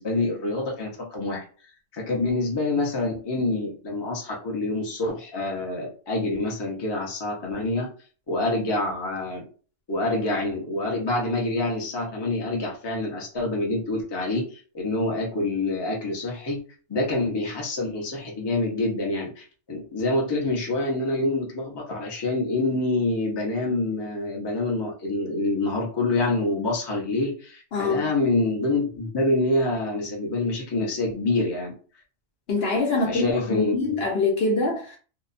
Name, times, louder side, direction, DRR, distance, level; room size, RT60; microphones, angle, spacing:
voice 1, 0.0-1.4 1.9-7.9 8.3-9.4 9.9-16.6 16.9-31.7 33.0-34.0, left 2 dB, 25° left, 0.6 m, -26 dB
voice 2, 27.7-28.0 32.5-35.0, left 3 dB, 60° left, 0.8 m, -24 dB
2.7 x 2.1 x 2.5 m
omnidirectional pair, 1.4 m